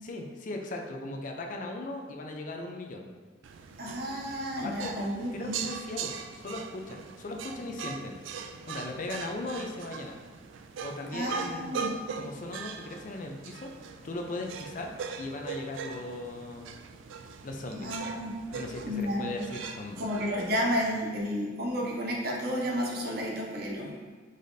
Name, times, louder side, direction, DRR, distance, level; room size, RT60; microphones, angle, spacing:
voice 1, 0.0-3.1 4.6-4.9 5.3-8.2 8.7-10.2 10.8-11.7 12.2-13.7 14.0-16.8 17.4-17.9 18.5-20.0, left 2 dB, 45° left, 2 dB, 0.5 m, -38 dB
sound 1, 3.4-20.6, right 6 dB, 90° right, 0.3 m, -41 dB
voice 2, 3.8-5.6 11.1-12.0 17.8-18.4 18.8-19.3 20.0-24.0, equal, 55° right, -1 dB, 0.8 m, -31 dB
4.9 x 4.0 x 2.6 m, 1.4 s
head